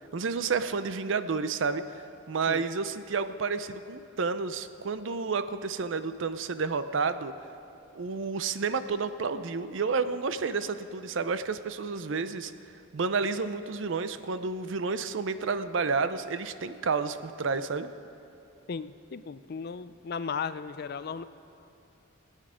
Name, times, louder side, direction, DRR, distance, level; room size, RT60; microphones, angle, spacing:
voice 1, 0.1-7.3 7.9-12.5 12.9-17.9, right 4 dB, 60° right, 12 dB, 0.5 m, -30 dB
voice 2, 18.7-21.2, left 6 dB, 50° left, 13 dB, 0.4 m, -36 dB
21.0 x 9.1 x 5.0 m, 2.8 s
head